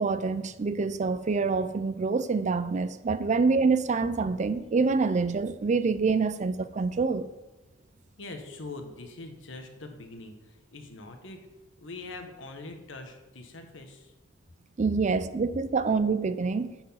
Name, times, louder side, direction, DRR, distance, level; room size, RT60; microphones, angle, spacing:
voice 1, 0.0-7.3 14.8-16.7, right 4 dB, 40° right, 0.4 m, -26 dB
voice 2, 8.2-11.4 11.8-14.1, left 2 dB, 85° left, 1.3 m, -43 dB
9.9 x 4.5 x 5.6 m
head